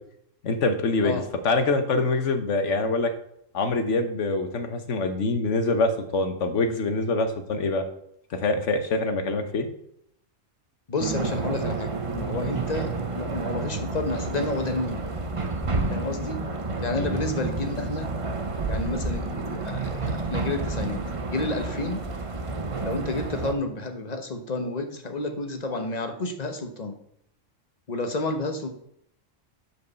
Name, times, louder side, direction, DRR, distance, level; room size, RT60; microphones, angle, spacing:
voice 1, 0.4-3.1 3.5-7.8 8.4-9.7 12.3-12.5 16.9-17.1, left 3 dB, 65° left, 7 dB, 1.4 m, -25 dB
voice 2, 10.9-15.1 15.9-16.4 16.8-18.1 18.7-21.0 21.3-22.0 22.8-27.0 27.9-28.7, left 2 dB, 35° left, 6 dB, 1.1 m, -30 dB
sound 1, 11.0-23.5, right 3 dB, 30° right, 0.8 m, -30 dB
8.1 x 5.0 x 6.8 m, 0.72 s
omnidirectional pair, 1.4 m